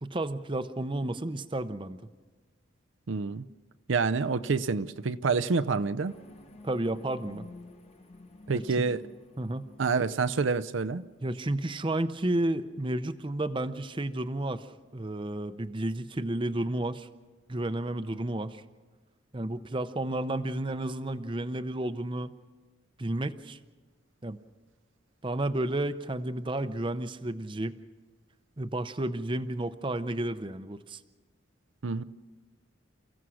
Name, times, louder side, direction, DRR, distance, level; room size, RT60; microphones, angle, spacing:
voice 1, 0.0-2.0 6.6-7.4 8.5-8.6 9.4-9.7 11.2-14.7 14.9-17.1 17.5-18.6 19.3-22.3 23.0-23.6 24.2-24.4 25.2-27.7 28.6-31.0, right 1 dB, 25° right, 0.6 m, -31 dB
voice 2, 3.1-3.4 3.9-6.1 8.5-9.0 9.8-11.0 31.8-32.0, right 4 dB, 75° right, 0.6 m, -27 dB
sound 1, 6.0-11.2, left 2 dB, 30° left, 1.1 m, -51 dB
29.0 x 15.5 x 6.3 m
head